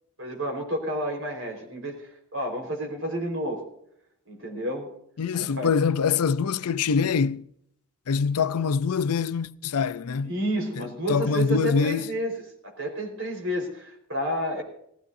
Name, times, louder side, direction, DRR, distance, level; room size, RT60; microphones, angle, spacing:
voice 1, 0.2-3.7 4.3-4.9 5.3-5.7 10.2-14.6, equal, 60° right, 4.4 m, -30 dB
voice 2, 5.2-7.4 8.1-10.4 10.8-12.1, left 5 dB, 85° left, 0.5 m, -24 dB
19.0 x 15.5 x 2.7 m
head